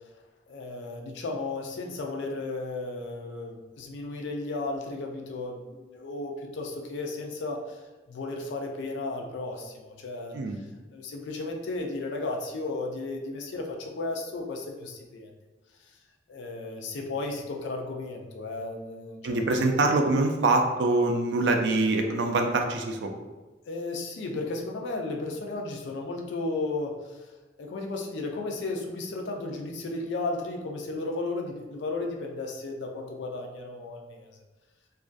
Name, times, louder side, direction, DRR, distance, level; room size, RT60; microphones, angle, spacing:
voice 1, 0.5-7.8 8.1-10.7 10.9-15.3 15.9-16.0 16.3-19.9 23.7-27.3 27.6-34.4, left 2 dB, 80° left, 1 dB, 0.4 m, -34 dB
voice 2, 19.2-23.1, right 2 dB, 70° right, 4 dB, 0.3 m, -24 dB
2.4 x 2.2 x 2.5 m, 1.2 s
head